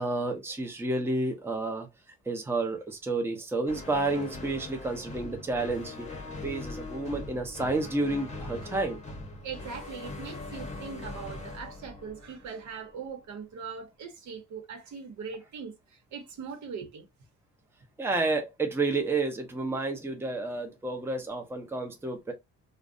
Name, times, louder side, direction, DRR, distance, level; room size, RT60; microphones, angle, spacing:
voice 1, 0.0-1.9 2.3-6.0 6.4-9.0 18.0-22.3, right 2 dB, 10° right, 0.6 m, -30 dB
sound 1, 3.7-13.1, left 2 dB, 25° left, 0.8 m, -41 dB
voice 2, 9.4-17.1, right 6 dB, 70° right, 0.9 m, -41 dB
2.5 x 2.1 x 2.5 m
cardioid pair, 90°, 30 cm